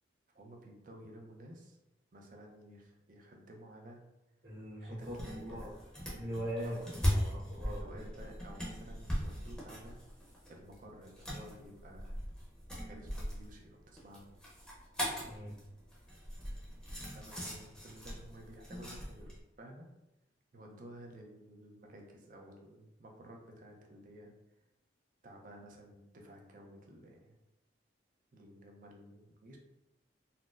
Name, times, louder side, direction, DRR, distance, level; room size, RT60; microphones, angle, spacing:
voice 1, 0.3-1.8 2.1-4.0 4.8-5.7 6.6-6.9 7.6-10.0 10.5-12.2 12.8-14.3 17.0-19.9 20.5-24.3 25.2-27.3 28.3-29.6, right 1 dB, 45° right, 1 dB, 0.5 m, -53 dB
voice 2, 4.4-5.8 6.1-6.8 7.0-7.8 15.2-15.6, equal, 70° right, -9 dB, 1.4 m, -41 dB
sound 1, 5.0-19.4, equal, 5° left, 0.7 m, -40 dB
4.1 x 2.0 x 2.4 m, 0.92 s
head